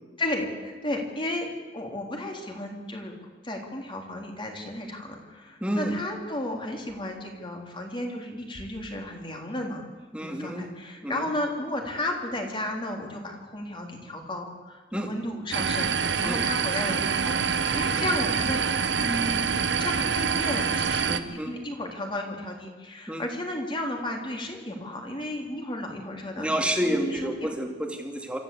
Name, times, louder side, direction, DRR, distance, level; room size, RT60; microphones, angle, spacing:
voice 1, 0.2-1.5 1.7-3.1 3.4-9.8 10.2-27.5, left 1 dB, 25° left, 2 dB, 3.3 m, -33 dB
voice 2, 5.6-5.9 10.1-10.7 11.0-11.3 14.9-15.1 16.2-16.4 18.0-18.1 21.1-21.5 23.1-23.2 26.4-28.4, right 1 dB, 5° right, 2 dB, 2.5 m, -29 dB
sound 1, 15.5-21.2, right 6 dB, 65° right, 1.1 m, -26 dB
26.0 x 14.0 x 8.4 m, 1.3 s
head